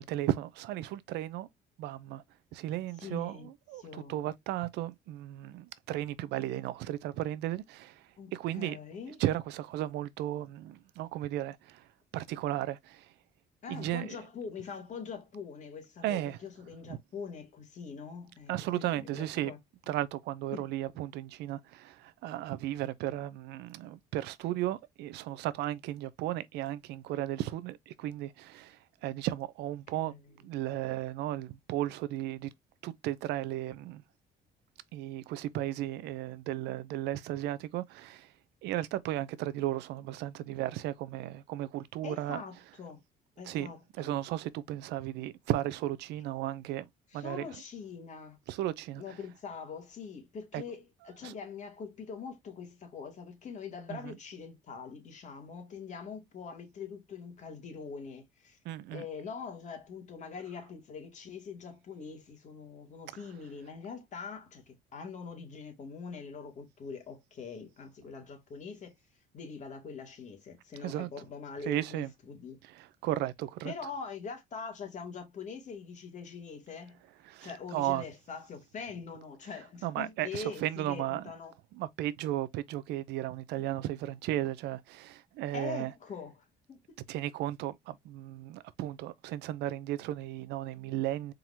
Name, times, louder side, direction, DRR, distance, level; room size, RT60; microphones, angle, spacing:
voice 1, 0.0-1.5 1.8-2.2 2.5-8.8 9.1-11.9 12.1-13.1 13.7-14.2 16.0-16.4 16.9-17.0 18.5-19.5 19.9-30.1 30.4-32.5 32.8-34.0 34.9-38.3 38.6-42.4 43.5-43.7 44.0-46.8 47.1-47.5 48.5-49.2 50.5-50.6 51.2-51.4 53.9-54.2 58.6-59.0 70.8-71.1 71.6-72.1 72.6-73.7 77.3-78.0 79.8-81.3 81.7-85.9 87.1-91.3, right 14 dB, 85° right, 0.6 m, -35 dB
voice 2, 3.0-3.5 3.8-4.2 8.2-9.2 13.6-19.6 20.5-20.6 29.9-30.2 42.0-43.0 43.4-44.2 47.1-48.4 49.0-58.6 58.9-68.9 69.3-72.6 73.6-77.0 77.4-81.5 85.5-87.0, left 5 dB, 45° left, 2.2 m, -43 dB
4.6 x 3.8 x 2.7 m
cardioid pair, 110°, 17 cm